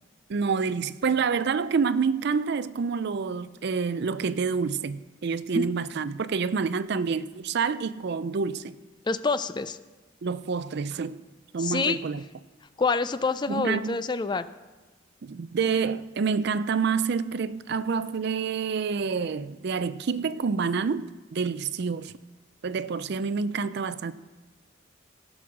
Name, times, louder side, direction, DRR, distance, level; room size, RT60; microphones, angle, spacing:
voice 1, 0.3-8.8 10.2-11.2 11.5-12.2 13.5-14.0 15.2-22.1 22.6-24.1, right 5 dB, 55° right, 0.4 m, -28 dB
voice 2, 9.1-9.8 11.6-12.0 12.8-14.5, left 4 dB, 20° left, 0.4 m, -26 dB
17.5 x 6.2 x 6.2 m
head